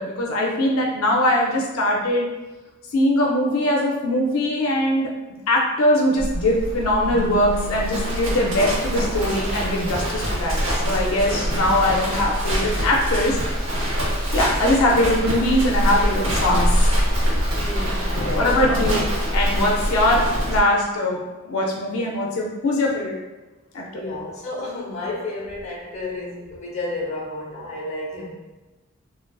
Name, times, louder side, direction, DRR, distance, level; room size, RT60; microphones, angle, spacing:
voice 1, 0.0-2.3 2.9-5.2 5.5-13.4 14.3-16.9 18.4-19.1 19.3-23.2 23.7-23.8, left 1 dB, 80° left, 0 dB, 0.4 m, -21 dB
Livestock farm animals working animals, 6.2-20.6, equal, 65° right, 0.7 m, -24 dB
Keyboard (musical), 7.1-9.8, left 5 dB, 20° right, 0.3 m, -39 dB
voice 2, 17.5-18.9 23.9-28.3, left 2 dB, 30° left, -5 dB, 0.7 m, -31 dB
3.1 x 2.4 x 2.2 m, 1.1 s
head